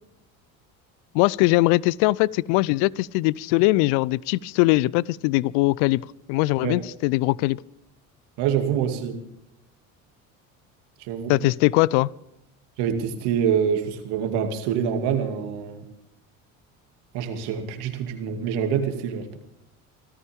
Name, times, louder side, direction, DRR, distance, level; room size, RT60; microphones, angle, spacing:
voice 1, 1.1-6.0 6.3-7.6 11.3-12.1, left 20 dB, 70° left, 25 dB, 0.6 m, -21 dB
voice 2, 8.4-9.2 11.0-11.5 12.8-15.8 17.1-19.4, right 8 dB, 75° right, 6 dB, 2.5 m, -26 dB
25.5 x 14.0 x 3.6 m, 0.81 s
hypercardioid pair, 70°, 41 cm